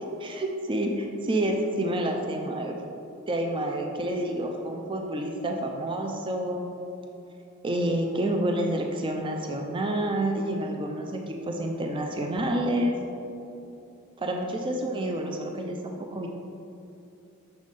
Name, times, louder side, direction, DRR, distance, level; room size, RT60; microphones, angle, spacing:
voice 1, 0.2-2.7 3.3-6.8 7.6-12.9 14.2-16.3, right 1 dB, 25° right, 2 dB, 0.4 m, -28 dB
6.4 x 3.5 x 5.2 m, 2.7 s
head